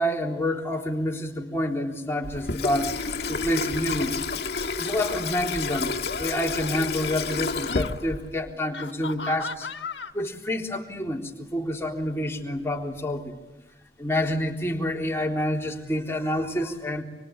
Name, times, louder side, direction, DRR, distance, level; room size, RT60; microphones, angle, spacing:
voice 1, 0.0-2.9 3.3-4.2 4.8-9.7 10.1-13.4 14.0-17.0, left 1 dB, 15° left, 0 dB, 3.7 m, -28 dB
Water tap faucet / Sink (filling or washing), 2.2-8.5, left 4 dB, 65° left, 1.7 m, -30 dB
sound 1, 4.6-4.8 5.6-7.0 7.5-7.9 8.7-10.1, left 4 dB, 90° left, 1.5 m, -37 dB
26.5 x 24.5 x 8.7 m, 1.1 s
head